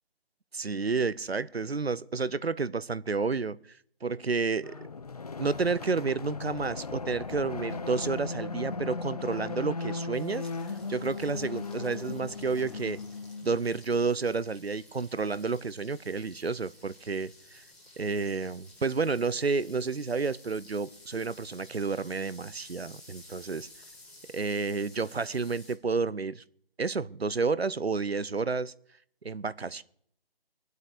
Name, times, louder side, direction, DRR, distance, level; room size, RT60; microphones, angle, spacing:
voice 1, 0.5-3.6 4.0-4.7 5.4-10.5 10.9-13.0 13.4-17.3 18.0-23.7 24.3-26.4 26.8-28.7 29.2-29.8, right 4 dB, 85° right, 17 dB, 0.7 m, -30 dB
sound 1, 4.6-13.8, left 4 dB, 40° left, 0.5 m, -37 dB
sound 2, 10.1-25.7, left 2 dB, ahead, 1.6 m, -54 dB
23.0 x 8.2 x 5.1 m, 0.66 s
figure-of-eight pair, 150°, 30 cm